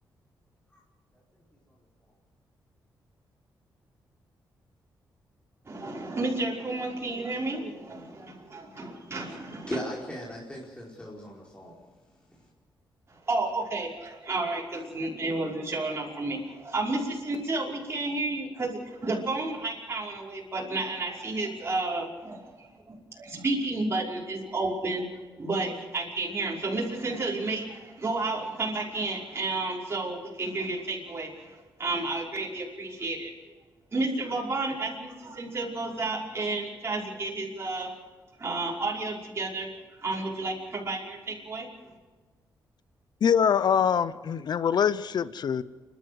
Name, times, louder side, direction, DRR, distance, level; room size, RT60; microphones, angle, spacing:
voice 1, 5.7-9.8 13.3-25.1 25.4-33.3 33.9-37.9 38.4-39.7 40.0-41.7, right 2 dB, 35° right, -4 dB, 5.4 m, -31 dB
voice 2, 9.7-11.7, equal, 15° left, -4 dB, 4.9 m, -37 dB
voice 3, 43.2-45.6, left 7 dB, 60° left, 16 dB, 0.7 m, -24 dB
29.5 x 12.0 x 8.0 m, 1.3 s
cardioid pair, 85°, 8 cm